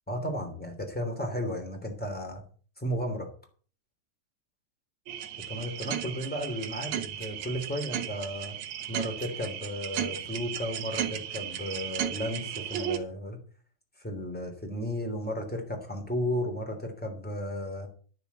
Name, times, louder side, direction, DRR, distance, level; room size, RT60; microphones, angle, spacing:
voice 1, 0.1-2.4 2.8-3.3 5.5-8.5 8.9-13.4 14.0-17.9, equal, 5° left, 3 dB, 2.0 m, -34 dB
sound 1, 5.1-13.0, right 10 dB, 75° right, 1.7 m, -35 dB
11.5 x 6.0 x 8.1 m, 0.42 s
omnidirectional pair, 5.0 m